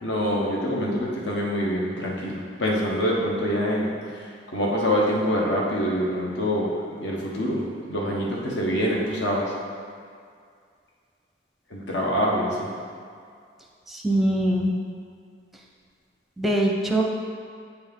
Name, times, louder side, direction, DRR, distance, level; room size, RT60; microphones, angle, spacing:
voice 1, 0.0-9.5 11.7-12.7, equal, 70° left, -3 dB, 1.2 m, -25 dB
voice 2, 13.9-14.7 16.4-17.0, right 1 dB, ahead, -1 dB, 0.6 m, -22 dB
7.9 x 4.3 x 3.6 m, 2.2 s
head